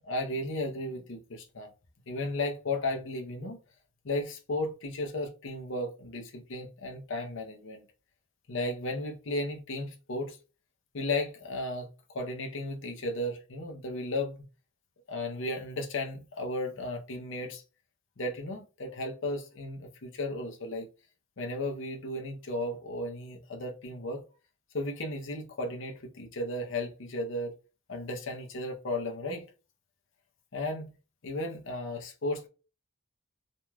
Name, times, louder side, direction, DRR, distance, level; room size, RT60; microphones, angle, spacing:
voice 1, 0.0-1.7 2.1-3.6 4.0-7.8 8.5-10.4 10.9-14.4 15.1-17.6 18.2-20.9 21.4-24.2 24.7-27.5 27.9-29.5 30.5-30.9 31.2-32.5, left 1 dB, 60° left, 0.7 m, -34 dB
3.1 x 2.6 x 2.2 m
head